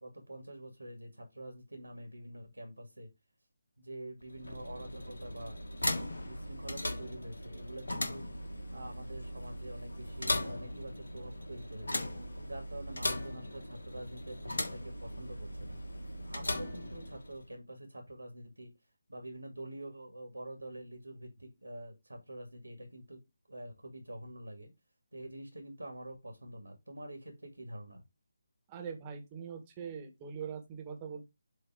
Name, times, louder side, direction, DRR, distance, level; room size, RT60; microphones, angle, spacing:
voice 1, 0.0-3.1 3.8-5.6 6.2-8.3 8.7-12.1 12.4-15.8 16.2-18.7 19.1-23.2 23.5-24.7 25.1-28.0, right 1 dB, 85° right, 3 dB, 2.2 m, -46 dB
sound 1, 4.2-17.5, left 1 dB, 70° left, 1.5 m, -38 dB
voice 2, 28.7-31.2, right 6 dB, 20° right, 4 dB, 1.4 m, -42 dB
7.6 x 3.0 x 4.8 m, 0.22 s
figure-of-eight pair, 150°, 0 cm